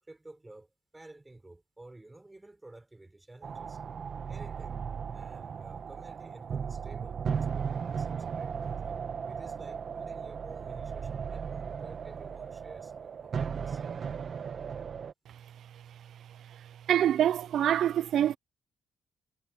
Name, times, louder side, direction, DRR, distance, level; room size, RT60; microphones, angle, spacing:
voice 1, 0.0-3.8 4.3-4.8 5.1-9.0 9.2-13.8, right 2 dB, 15° right, 6.2 m, -52 dB
sound 1, 3.4-15.1, right 6 dB, 50° right, 1.4 m, -36 dB
voice 2, 16.9-18.4, right 10 dB, 70° right, 0.4 m, -25 dB
cardioid pair, 90°, 0 cm